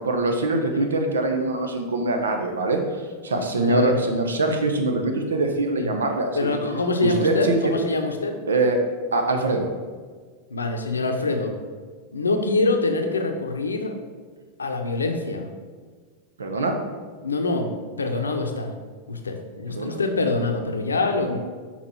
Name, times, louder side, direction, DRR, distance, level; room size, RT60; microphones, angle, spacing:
voice 1, 0.0-6.5 7.0-7.7 8.5-8.8 9.1-9.7 16.4-16.7 19.7-20.0, right 2 dB, 80° right, 4 dB, 0.8 m, -23 dB
voice 2, 3.6-4.0 5.8-5.9 6.3-8.4 10.5-11.5 12.1-13.9 14.6-15.5 17.2-17.7 18.0-18.7 19.1-21.4, left 3 dB, 85° left, 5 dB, 0.7 m, -25 dB
6.0 x 4.2 x 4.4 m, 1.5 s
hypercardioid pair, 90°, 0 cm